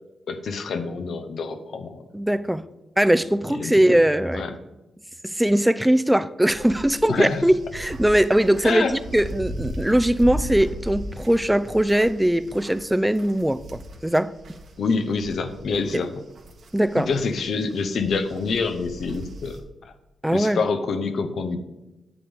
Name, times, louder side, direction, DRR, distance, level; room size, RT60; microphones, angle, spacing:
voice 1, 0.3-2.0 3.5-3.8 4.3-4.6 7.1-7.4 8.6-9.0 14.8-16.1 17.1-19.6 19.8-19.9 20.3-21.6, left 4 dB, 70° left, 8 dB, 0.8 m, -26 dB
voice 2, 2.1-2.6 3.0-4.4 5.2-14.3 15.9-16.0 16.7-17.1 20.2-20.6, right 1 dB, 5° right, 14 dB, 0.4 m, -20 dB
sound 1, 6.5-14.7 15.0-19.6, right 1 dB, 65° right, 1.5 m, -37 dB
8.7 x 8.0 x 3.5 m, 1.0 s
cardioid pair, 75°, 0 cm